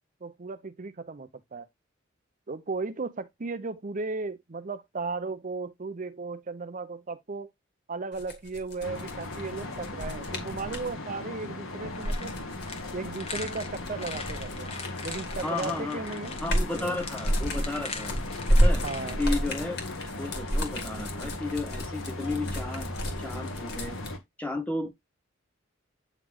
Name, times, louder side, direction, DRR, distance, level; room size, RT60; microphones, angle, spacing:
voice 1, 0.2-1.7 2.5-7.5 7.9-12.3 12.9-14.7 15.0-16.3 16.8-17.0 18.8-19.2, right 3 dB, 40° right, 0.6 m, -36 dB
sound 1, 8.1-10.9 11.8-15.6 16.0-24.1, equal, 60° left, 2.0 m, -30 dB
sound 2, 8.8-24.2, left 2 dB, 85° left, 1.5 m, -38 dB
sound 3, 11.4-19.1, left 4 dB, 30° left, 1.2 m, -42 dB
voice 2, 15.4-16.0 16.4-18.2 18.5-18.8 19.2-22.9 23.2-24.0 24.4-24.9, left 2 dB, 5° left, 0.6 m, -33 dB
9.0 x 3.2 x 3.6 m
head